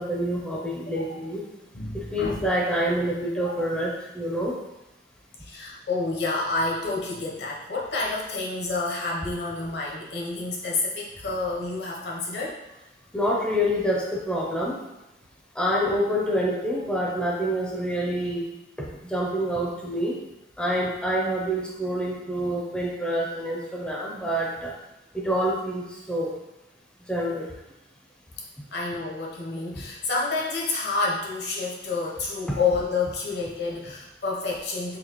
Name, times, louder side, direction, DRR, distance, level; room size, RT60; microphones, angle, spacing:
voice 1, 0.0-1.4 1.9-4.5 13.1-14.8 15.6-18.4 18.8-20.2 20.6-24.7 25.1-26.3 27.1-27.5, equal, 5° left, -3 dB, 0.5 m, -27 dB
voice 2, 1.7-2.5 3.4-3.5 5.4-12.6 28.7-35.0, left 3 dB, 65° left, -3 dB, 0.8 m, -29 dB
4.0 x 2.7 x 3.0 m, 0.93 s
head